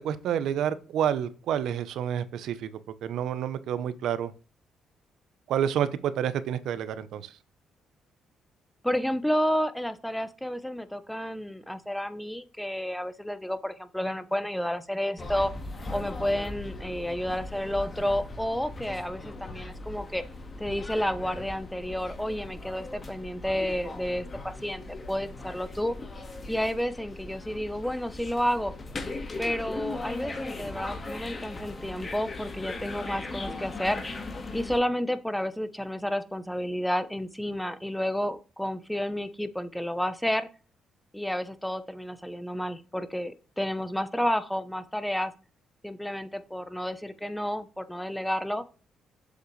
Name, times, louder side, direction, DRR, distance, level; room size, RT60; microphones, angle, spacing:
voice 1, 0.0-2.7 3.0-4.3 5.5-7.2, right 9 dB, 80° right, 14 dB, 0.8 m, -29 dB
voice 2, 8.8-15.5 15.9-20.2 20.6-24.8 25.1-25.9 26.5-28.7 29.4-34.1 34.5-40.5 41.1-45.3 45.8-48.6, equal, 5° left, 11 dB, 0.8 m, -31 dB
sound 1, 15.2-34.8, left 2 dB, 30° left, 1.7 m, -39 dB
7.4 x 6.5 x 3.2 m, 0.35 s
cardioid pair, 90°, 0 cm